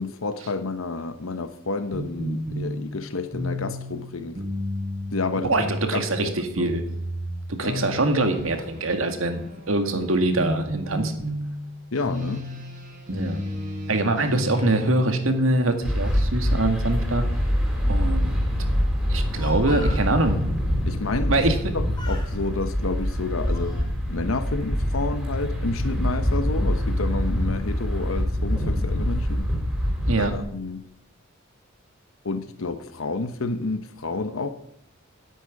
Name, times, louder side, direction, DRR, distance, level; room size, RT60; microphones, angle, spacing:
voice 1, 0.0-4.4 5.1-5.5 5.9-6.3 6.6-6.7 7.6-7.9 11.9-12.4 20.9-21.3 21.7-23.8 24.1-29.5 30.2-30.8 32.2-34.5, left 3 dB, 80° left, 0.9 m, -30 dB
sound 1, 1.9-14.8, equal, 40° right, 4.4 m, -32 dB
voice 2, 5.4-6.8 7.5-11.1 13.1-13.4 13.9-17.3 17.9-18.3 19.1-20.4 21.3-21.7 30.1-30.3, right 2 dB, 80° right, 1.9 m, -24 dB
sound 2, 15.8-30.4, equal, 5° right, 3.5 m, -25 dB
Speech, 19.1-20.1 21.4-21.7 21.9-22.3 23.0-23.9, left 2 dB, 20° left, 2.9 m, -41 dB
9.8 x 9.2 x 9.7 m
head